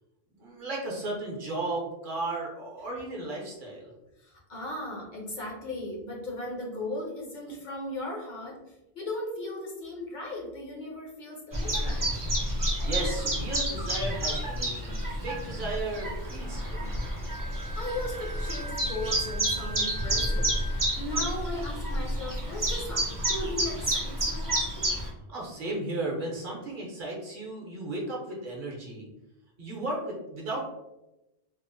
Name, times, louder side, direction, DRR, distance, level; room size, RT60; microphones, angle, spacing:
voice 1, 0.4-3.9 12.8-16.9 25.3-29.1 29.6-30.7, right 2 dB, 60° right, -2 dB, 0.8 m, -35 dB
voice 2, 4.2-12.3 13.0-13.1 17.8-20.6 21.0-24.6, left 1 dB, 55° left, -2 dB, 0.6 m, -37 dB
Chirp tweet, 11.5-25.1, right 1 dB, 25° right, 0.4 m, -30 dB
Wind instrument woodwind instrument, 17.3-21.0, equal, 85° left, 1.1 m, -42 dB
2.8 x 2.0 x 2.5 m, 0.95 s
omnidirectional pair, 1.1 m